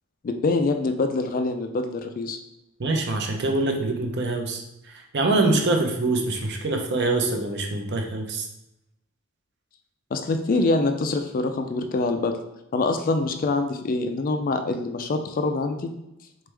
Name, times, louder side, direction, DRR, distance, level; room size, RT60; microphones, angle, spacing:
voice 1, 0.2-2.4 10.1-12.4 12.7-15.9, left 3 dB, 40° left, 7 dB, 0.3 m, -25 dB
voice 2, 2.8-8.5, right 2 dB, 50° right, 3 dB, 0.7 m, -24 dB
4.2 x 3.4 x 3.3 m, 0.90 s
head